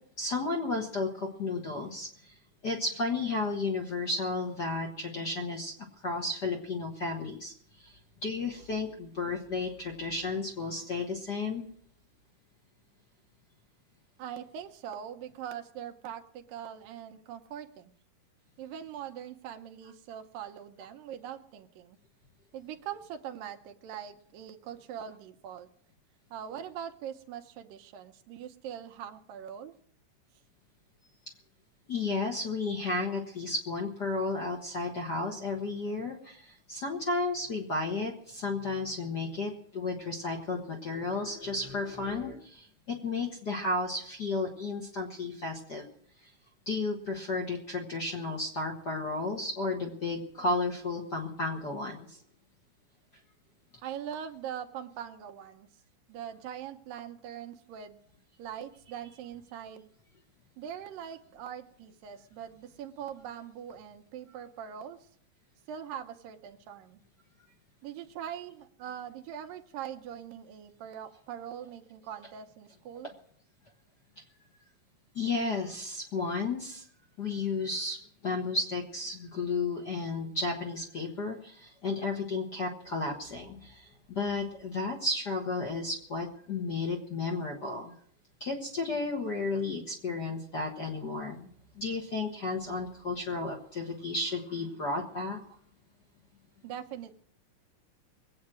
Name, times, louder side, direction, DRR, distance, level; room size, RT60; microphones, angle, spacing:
voice 1, 0.2-2.3 2.6-5.7 6.0-7.5 7.8-11.7 31.9-45.9 46.7-52.2 75.1-76.8 77.2-78.0 78.2-87.9 88.4-91.5 91.8-95.4, left 3 dB, 45° left, 0 dB, 1.5 m, -33 dB
voice 2, 14.2-17.9 18.6-22.0 22.5-25.7 26.3-29.7 53.8-55.7 56.1-58.0 58.4-59.9 60.6-65.1 65.7-67.0 67.8-73.1 96.6-97.1, right 9 dB, 85° right, 7 dB, 2.7 m, -42 dB
22.0 x 8.7 x 6.2 m, 0.62 s
omnidirectional pair, 3.9 m